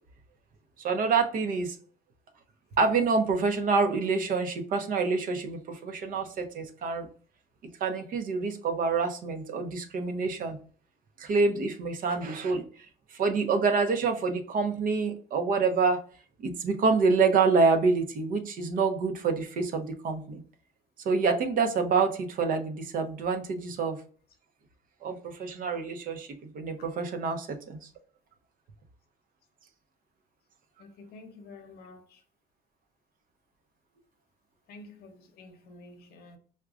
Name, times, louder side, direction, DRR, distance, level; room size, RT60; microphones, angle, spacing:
voice 1, 0.8-1.8 2.8-7.1 7.8-10.6 11.2-12.6 13.1-16.0 16.4-20.4 21.0-24.0 25.0-27.8, right 4 dB, 55° right, 0.6 m, -27 dB
voice 2, 30.8-32.2 34.7-36.4, left 3 dB, 65° left, 0.7 m, -50 dB
4.7 x 2.2 x 2.4 m
cardioid pair, 110°, 17 cm